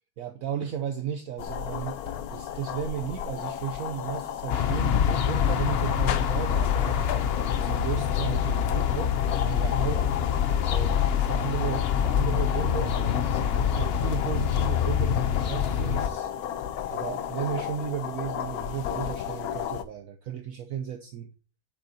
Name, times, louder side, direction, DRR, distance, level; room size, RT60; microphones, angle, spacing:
voice 1, 0.2-7.1 7.6-10.1 10.3-16.3 16.9-21.3, right 8 dB, 65° right, 6 dB, 1.0 m, -35 dB
sound 1, 1.4-19.8, left 9 dB, 75° left, 1.1 m, -34 dB
sound 2, 4.5-16.1, left 8 dB, 60° left, 0.7 m, -25 dB
8.4 x 6.6 x 2.8 m, 0.37 s
omnidirectional pair, 1.7 m